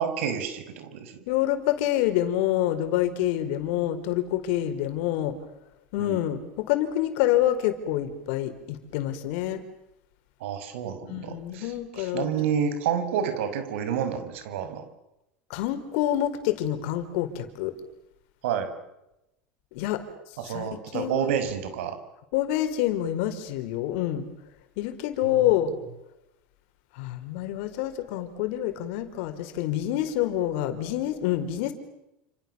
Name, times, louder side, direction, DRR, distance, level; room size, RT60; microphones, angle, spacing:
voice 1, 0.0-1.2 6.0-6.2 10.4-14.8 18.4-18.7 20.4-22.0 25.2-25.5, right 8 dB, 85° right, 9 dB, 6.3 m, -29 dB
voice 2, 1.3-5.4 5.9-9.6 11.0-12.3 15.5-17.7 19.7-20.0 20.5-21.3 22.3-24.3 24.8-25.7 27.0-31.7, left 12 dB, 70° left, 9 dB, 4.8 m, -27 dB
29.0 x 28.0 x 7.2 m, 0.88 s
supercardioid pair, 125°, 7 cm